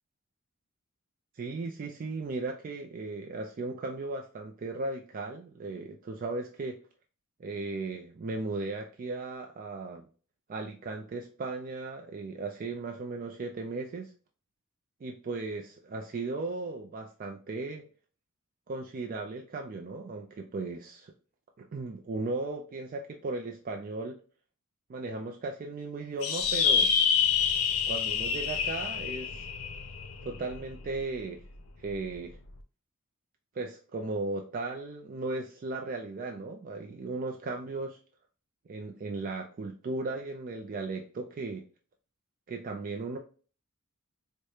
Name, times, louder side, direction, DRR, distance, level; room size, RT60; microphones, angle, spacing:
voice 1, 1.3-6.8 7.4-10.1 10.5-14.1 15.0-17.8 18.7-21.1 21.6-24.2 24.9-26.9 27.9-29.5 30.2-31.4 31.8-32.4 33.5-38.0 38.7-41.6 42.5-43.2, right 3 dB, 40° right, 3 dB, 0.4 m, -36 dB
sound 1, 26.2-31.0, left 7 dB, 80° left, 0.5 m, -27 dB
4.7 x 2.1 x 2.8 m, 0.39 s
head